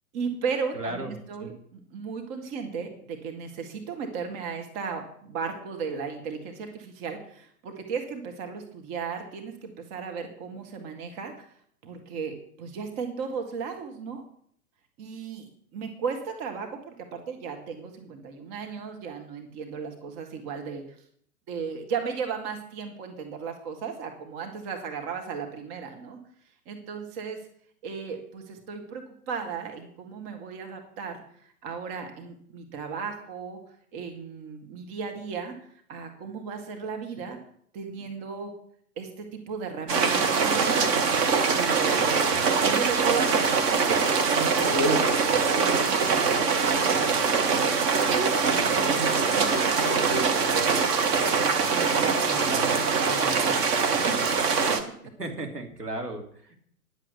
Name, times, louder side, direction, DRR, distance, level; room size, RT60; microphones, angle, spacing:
voice 1, 0.1-11.5 11.8-14.2 15.0-20.8 21.5-26.2 26.7-27.4 27.8-33.6 33.9-35.6 35.9-37.4 37.7-38.5 39.0-41.1 41.5-42.0 42.6-47.6 48.5-48.9 49.3-50.5 51.7-53.7, right 5 dB, 30° right, 4 dB, 1.9 m, -35 dB
voice 2, 0.7-1.1 1.4-1.5 52.5-52.8 53.9-54.2 55.2-56.6, right 2 dB, 90° right, 2 dB, 3.3 m, -35 dB
sound 1, 39.9-54.8, right 5 dB, 10° right, 0.5 m, -23 dB
10.5 x 7.7 x 8.1 m, 0.63 s
figure-of-eight pair, 120°, 46 cm